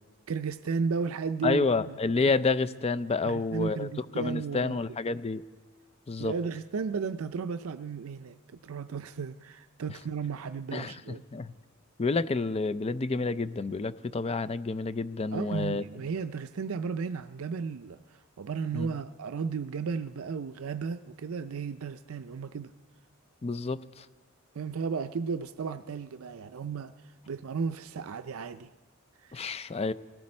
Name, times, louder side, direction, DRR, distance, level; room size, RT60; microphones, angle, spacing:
voice 1, 0.3-2.0 3.2-4.8 6.2-11.2 15.3-22.7 24.5-28.7 29.2-29.5, right 5 dB, 75° right, 10 dB, 0.5 m, -34 dB
voice 2, 1.4-3.9 4.2-5.4 6.1-6.3 10.7-11.5 12.0-15.8 18.7-18.9 23.4-24.1 29.3-29.9, left 3 dB, 30° left, 14 dB, 0.5 m, -29 dB
19.0 x 17.5 x 4.3 m, 1.5 s
head